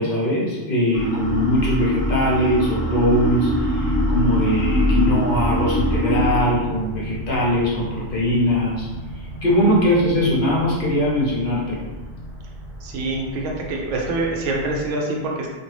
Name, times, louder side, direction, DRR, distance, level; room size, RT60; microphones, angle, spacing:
voice 1, 0.0-8.9 9.1-11.9, equal, 55° left, -5 dB, 0.8 m, -21 dB
sound 1, 0.9-6.4, left 1 dB, ahead, 0.9 m, -22 dB
sound 2, 3.4-14.9, equal, 40° right, 0.6 m, -35 dB
voice 2, 12.8-15.5, right 2 dB, 85° right, -1 dB, 0.9 m, -25 dB
2.5 x 2.4 x 3.1 m, 1.2 s
omnidirectional pair, 1.2 m